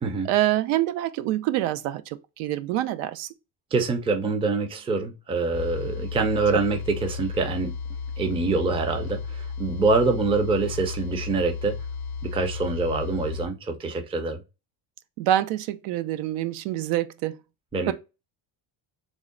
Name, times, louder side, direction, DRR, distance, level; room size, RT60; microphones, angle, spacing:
voice 1, 0.2-3.3 15.2-17.4 17.9-18.0, right 13 dB, 80° right, 0.6 m, -26 dB
voice 2, 3.7-7.7 8.2-11.8 12.2-14.4 17.7-17.9, right 3 dB, 10° right, 0.4 m, -25 dB
sound 1, 5.5-13.5, left 5 dB, 50° left, 0.5 m, -34 dB
3.6 x 2.1 x 3.7 m
cardioid pair, 135°, 49 cm